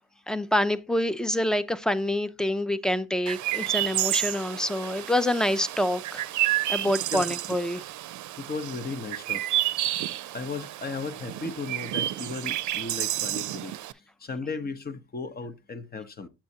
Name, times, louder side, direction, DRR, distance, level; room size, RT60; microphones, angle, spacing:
voice 1, 0.3-6.2 6.7-7.8, left 1 dB, ahead, 0.5 m, -26 dB
Chirp tweet, 3.3-13.9, right 14 dB, 75° right, 0.5 m, -30 dB
voice 2, 8.4-9.4 10.3-13.7 14.2-16.3, left 4 dB, 30° left, 0.8 m, -35 dB
7.5 x 7.3 x 2.8 m
cardioid pair, 90°, 30 cm